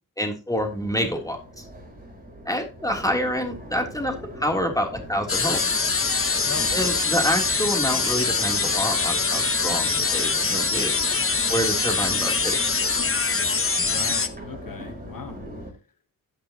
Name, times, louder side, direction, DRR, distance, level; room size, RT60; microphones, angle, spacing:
voice 1, 0.2-1.7 2.4-5.6 6.7-11.0 11.5-12.6, equal, 10° left, 3.1 m, -27 dB
Crowd, 0.5-15.7, equal, 20° right, 4.7 m, -40 dB
sound 1, 5.3-14.3, left 4 dB, 35° left, 1.2 m, -23 dB
voice 2, 6.4-6.9 13.8-15.4, left 6 dB, 55° left, 1.2 m, -38 dB
16.0 x 5.9 x 2.9 m
cardioid pair, 45°, 39 cm